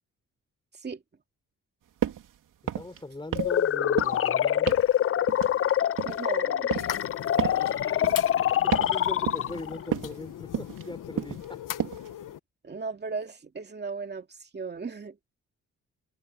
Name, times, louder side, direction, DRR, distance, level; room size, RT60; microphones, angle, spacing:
sound 1, 2.0-2.3 2.6-3.0 3.3-3.7 4.0-4.3 4.7-4.9 5.3-6.3 6.7-7.0 7.4-7.6 8.0-8.3 8.7-9.0 9.3-9.6 9.9-10.2 10.5-10.9 11.2-11.5 11.8-12.1, right 10 dB, 85° right, 2.9 m, -32 dB
voice 1, 2.7-4.8 7.3-8.1 8.6-11.6, left 2 dB, 15° left, 4.2 m, -40 dB
sound 2, 3.3-9.8, left 10 dB, 45° left, 0.5 m, -25 dB
voice 2, 6.0-6.9 7.7-7.8 12.6-15.2, right 4 dB, 35° right, 2.6 m, -36 dB
sound 3, 6.8-12.4, left 11 dB, 85° left, 1.3 m, -39 dB
cardioid pair, 115°, 31 cm